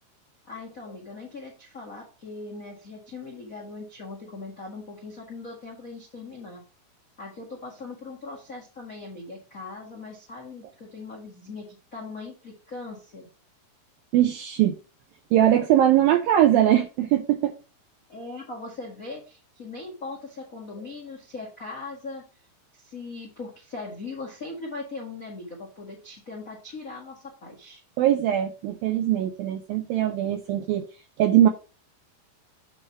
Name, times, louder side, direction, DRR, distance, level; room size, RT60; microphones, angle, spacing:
voice 1, 0.5-6.6 7.2-13.3 18.1-22.2 22.7-27.8, left 3 dB, 55° left, 0.9 m, -40 dB
voice 2, 14.1-14.7 15.3-17.5 28.0-30.9 31.2-31.5, right 12 dB, 80° right, 2.1 m, -21 dB
8.7 x 3.3 x 5.9 m
omnidirectional pair, 4.8 m